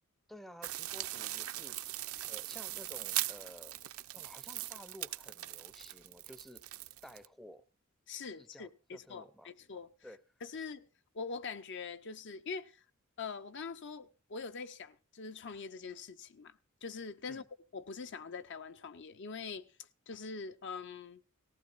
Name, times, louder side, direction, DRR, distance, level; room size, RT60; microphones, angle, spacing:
voice 1, 0.3-3.8 4.1-7.6 8.4-9.5 10.0-10.2 17.3-17.5, equal, ahead, 0.5 m, -54 dB
sound 1, 0.6-7.3, right 15 dB, 75° right, 0.6 m, -40 dB
voice 2, 8.1-9.9 10.4-10.9 11.1-12.8 13.2-17.4 17.7-19.7 20.1-21.2, left 5 dB, 55° left, 0.6 m, -43 dB
18.0 x 15.0 x 2.5 m
head